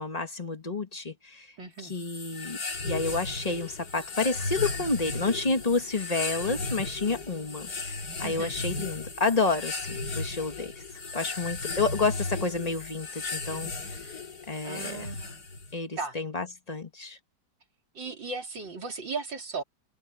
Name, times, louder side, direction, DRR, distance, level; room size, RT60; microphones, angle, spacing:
voice 1, 0.0-1.5 1.8-2.6 2.8-10.7 11.1-14.0 14.5-15.1 15.7-17.2, left 3 dB, 20° left, 1.6 m, -30 dB
voice 2, 1.6-1.9 8.2-8.5 14.6-15.4 16.0-16.2 17.9-19.6, right 4 dB, 75° right, 4.4 m, -36 dB
sound 1, 1.9-15.7, left 3 dB, 55° left, 3.5 m, -35 dB
omnidirectional pair, 2.0 m